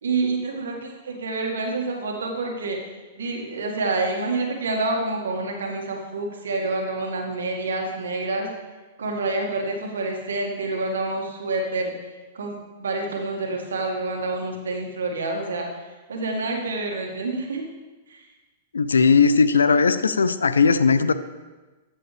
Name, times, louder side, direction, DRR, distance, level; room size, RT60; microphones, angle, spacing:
voice 1, 0.0-2.8 3.2-8.5 9.0-11.9 12.3-15.7 16.1-17.6 18.1-18.2, right 3 dB, 80° right, 1 dB, 2.0 m, -27 dB
voice 2, 18.7-21.1, left 5 dB, 90° left, 14 dB, 0.5 m, -18 dB
14.5 x 7.5 x 3.4 m, 1.2 s
hypercardioid pair, 115°, 0 cm